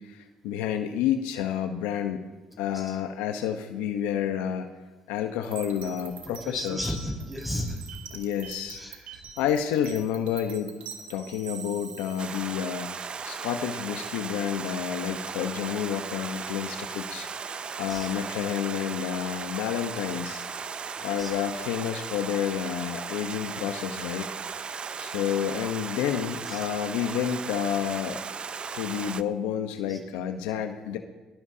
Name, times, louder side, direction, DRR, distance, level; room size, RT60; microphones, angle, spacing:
voice 1, 0.0-2.2 2.6-4.7 5.1-7.0 8.1-8.8 9.4-10.8 11.1-13.0 13.2-17.3 17.8-20.4 21.0-24.3 25.0-28.2 28.7-31.0, left 9 dB, 90° left, 6 dB, 1.0 m, -30 dB
voice 2, 2.5-3.0 6.2-7.8 8.7-9.2 17.9-18.1 21.0-21.4 26.4-26.7 29.9-30.0, equal, ahead, -1 dB, 5.4 m, -35 dB
sound 1, 5.4-12.4, right 7 dB, 70° right, 2.4 m, -44 dB
Stream, 12.2-29.2, right 6 dB, 40° right, 0.5 m, -36 dB
20.0 x 19.5 x 2.9 m, 1.2 s
supercardioid pair, 75°, 3 cm